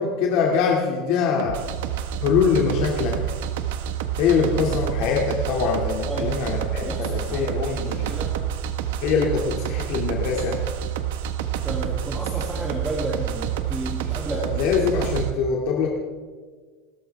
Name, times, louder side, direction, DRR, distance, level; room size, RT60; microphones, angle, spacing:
voice 1, 0.0-1.6 2.2-3.2 4.2-8.2 9.0-10.6 14.3-15.9, left 6 dB, 60° left, -1 dB, 2.3 m, -23 dB
sound 1, 1.4-15.3, right 10 dB, 85° right, 1.2 m, -28 dB
voice 2, 6.8-8.4 11.6-14.8, right 1 dB, 15° right, -4 dB, 2.7 m, -32 dB
28.0 x 13.5 x 3.5 m, 1.5 s
supercardioid pair, 150°, 0 cm